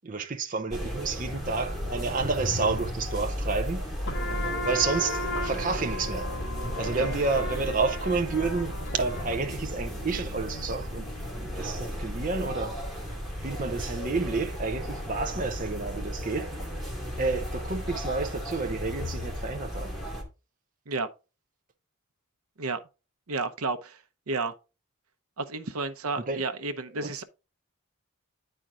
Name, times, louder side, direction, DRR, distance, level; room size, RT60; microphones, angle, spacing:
voice 1, 0.0-3.8 4.6-6.3 6.8-8.7 9.0-11.1 11.3-12.8 13.4-16.7 17.2-19.9 26.2-26.4 27.0-27.1, right 4 dB, 35° right, 0.6 m, -30 dB
sound 1, 0.7-20.2, equal, ahead, 2.2 m, -35 dB
sound 2, 4.1-11.4, left 1 dB, 55° left, 2.0 m, -36 dB
voice 2, 23.3-24.0 24.3-24.5 25.4-27.2, right 3 dB, 80° right, 0.8 m, -31 dB
10.0 x 4.5 x 3.8 m
head